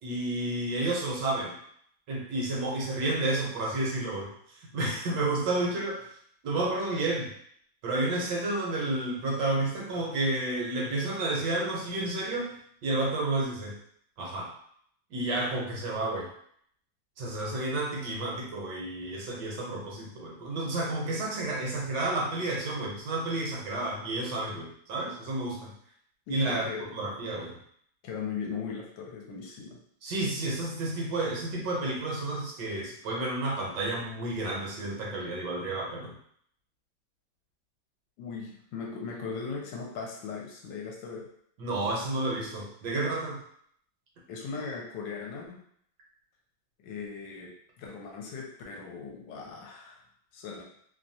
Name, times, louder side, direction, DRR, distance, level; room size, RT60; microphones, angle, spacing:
voice 1, 0.0-1.6 2.1-6.1 6.4-7.3 7.8-12.5 12.8-13.8 14.2-14.5 15.1-16.3 17.2-25.7 26.3-26.7 26.9-27.6 30.0-36.2 41.6-43.4, right 2 dB, 70° right, -2 dB, 1.2 m, -31 dB
voice 2, 26.3-27.0 28.0-29.8 38.2-41.3 44.3-45.6 46.8-50.0 50.3-50.6, left 5 dB, 80° left, 0 dB, 1.2 m, -38 dB
3.1 x 2.2 x 2.6 m, 0.66 s
omnidirectional pair, 2.1 m